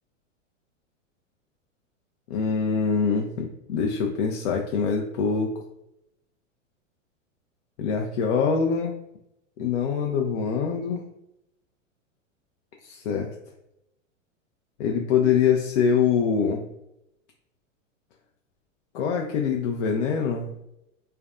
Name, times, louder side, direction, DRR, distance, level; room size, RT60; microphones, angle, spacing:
voice 1, 2.3-5.5 7.8-8.9 9.6-11.0 12.8-13.3 14.8-16.6 18.9-20.5, left 6 dB, 65° left, 1 dB, 0.5 m, -24 dB
2.4 x 2.1 x 2.3 m, 0.85 s
hypercardioid pair, 105°, 39 cm